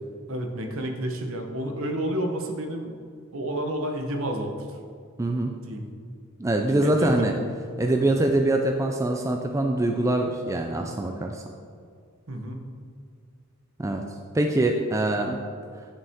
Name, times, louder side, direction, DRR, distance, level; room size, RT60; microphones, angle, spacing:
voice 1, 0.3-2.9 3.3-4.5 5.7-5.8 6.8-7.4 8.1-8.2 12.3-12.6, right 1 dB, 60° right, 4 dB, 0.9 m, -30 dB
voice 2, 5.2-5.5 6.4-7.3 7.8-11.4 13.8-14.0 14.3-15.4, right 1 dB, 15° right, 3 dB, 0.3 m, -24 dB
9.6 x 5.7 x 3.6 m, 2.2 s
head